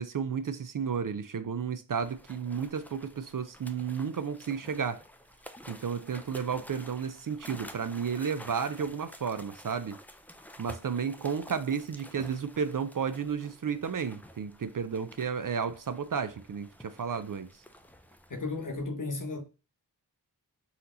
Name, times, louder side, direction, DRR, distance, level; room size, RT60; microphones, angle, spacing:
voice 1, 0.0-5.0 5.7-10.0 10.6-17.5, right 6 dB, 50° right, 0.5 m, -32 dB
sound 1, 2.0-18.8, left 1 dB, 5° left, 0.4 m, -51 dB
voice 2, 18.3-19.4, left 3 dB, 50° left, 1.1 m, -34 dB
4.2 x 2.8 x 3.8 m
wide cardioid pair, 40°, 41 cm